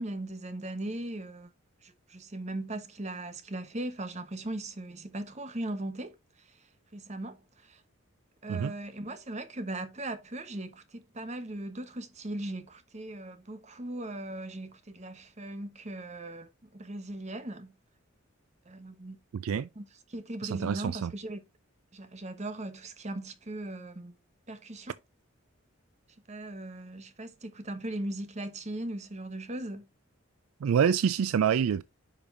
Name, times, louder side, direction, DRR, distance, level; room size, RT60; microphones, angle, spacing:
voice 1, 0.0-1.5 1.8-6.6 6.9-7.8 8.4-17.7 18.7-19.2 19.8-21.4 21.9-24.1 24.5-24.9 26.3-29.9, right 1 dB, 35° right, 1.0 m, -39 dB
voice 2, 19.3-19.7 20.4-21.1 30.6-31.8, right 7 dB, 85° right, 0.4 m, -26 dB
10.0 x 5.2 x 2.5 m
head